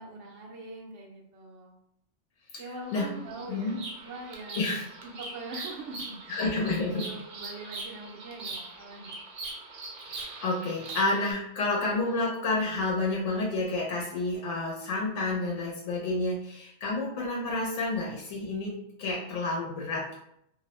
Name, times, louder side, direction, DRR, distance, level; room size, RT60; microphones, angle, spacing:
voice 1, 0.0-1.8 2.6-4.7 5.0-6.7 6.9-9.1, right 2 dB, 90° right, -1 dB, 1.0 m, -43 dB
voice 2, 2.5-3.1 3.5-3.8 4.6-4.8 6.3-7.1 10.0-20.2, left 2 dB, 85° left, -3 dB, 0.9 m, -30 dB
Bird vocalization bird call bird song, 2.8-11.3, right 3 dB, 55° right, 0.6 m, -42 dB
2.6 x 2.0 x 2.8 m, 0.77 s
omnidirectional pair, 1.2 m